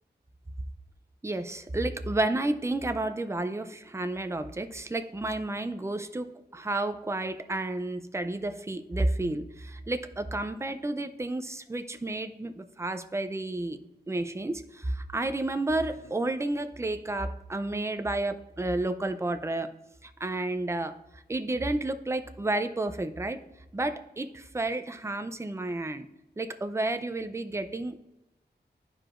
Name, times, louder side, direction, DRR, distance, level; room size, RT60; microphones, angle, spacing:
voice 1, 1.2-19.7 20.0-21.0 21.3-23.4 23.7-26.1 26.4-27.9, right 2 dB, 15° right, 9 dB, 0.5 m, -31 dB
12.0 x 4.7 x 2.5 m, 0.94 s
wide cardioid pair, 90°, 18 cm